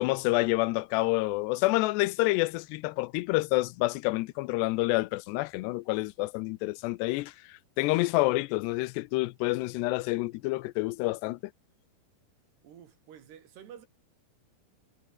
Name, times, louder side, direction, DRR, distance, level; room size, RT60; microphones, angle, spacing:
voice 1, 0.0-11.4, left 21 dB, 90° left, 2.8 m, -28 dB
voice 2, 12.6-13.9, right 9 dB, 80° right, 4.8 m, -50 dB
omnidirectional pair, 4.7 m